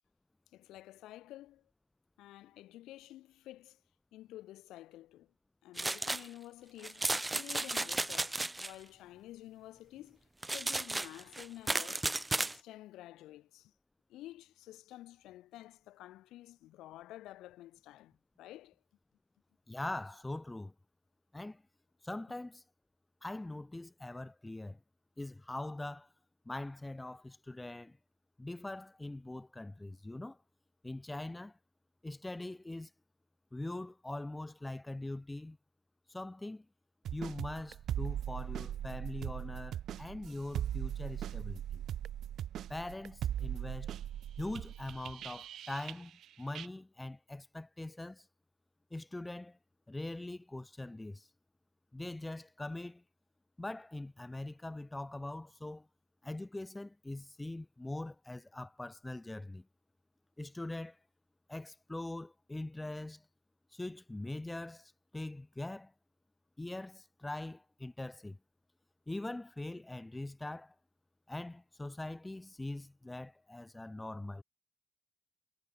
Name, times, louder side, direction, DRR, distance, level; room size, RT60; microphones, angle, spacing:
voice 1, 0.5-1.7 2.2-3.8 4.1-5.3 5.6-10.2 10.5-12.1 12.3-13.7 14.1-18.8, left 15 dB, 90° left, 4.2 m, -51 dB
sound 1, 5.8-6.3 6.8-8.7 10.4-12.6, right 2 dB, 15° right, 0.5 m, -34 dB
voice 2, 19.7-20.7 21.3-21.6 22.0-22.6 23.2-24.8 25.2-26.1 26.5-28.0 28.4-30.4 30.8-31.6 32.0-32.9 33.5-35.6 36.1-36.7 37.1-41.8 42.7-43.9 44.4-46.1 46.4-48.3 48.9-49.6 49.9-51.3 51.9-53.0 53.6-55.9 56.2-59.7 60.4-61.0 61.5-63.3 63.7-65.9 66.6-68.4 69.1-70.7 71.3-74.4, left 2 dB, 15° left, 2.1 m, -42 dB
sound 2, 37.1-46.3 46.5-46.7, right 11 dB, 70° right, 0.8 m, -39 dB
cardioid pair, 90°, 0 cm